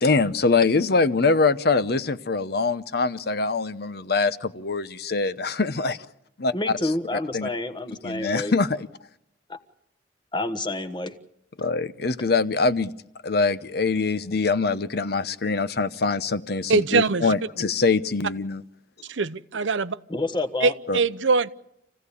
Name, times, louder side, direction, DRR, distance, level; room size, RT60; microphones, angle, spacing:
voice 1, 0.0-6.0 6.4-6.5 7.3-7.5 8.0-8.9 11.6-12.9 13.2-18.6 20.9-21.0, left 4 dB, 55° left, 0.8 m, -23 dB
voice 2, 6.5-8.5 9.5-9.6 10.3-11.1 20.1-20.7, left 2 dB, 25° left, 1.3 m, -28 dB
voice 3, 16.7-17.2 19.1-20.0 20.6-21.5, right 4 dB, 85° right, 0.8 m, -22 dB
27.0 x 16.0 x 8.4 m
head